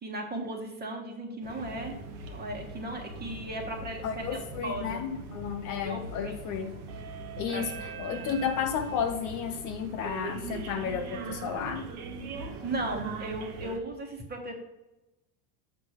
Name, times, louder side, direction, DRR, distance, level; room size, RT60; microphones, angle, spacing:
voice 1, 0.0-2.0 2.2-5.1 5.8-6.4 7.5-7.7 8.1-8.3 12.6-14.6, right 1 dB, 20° right, 2 dB, 1.5 m, -36 dB
sound 1, 1.4-13.8, right 3 dB, 75° right, 1.4 m, -40 dB
voice 2, 4.0-6.8 7.4-11.9, left 7 dB, 45° left, 6 dB, 0.7 m, -33 dB
7.2 x 6.0 x 3.2 m, 1.0 s
supercardioid pair, 135°, 45 cm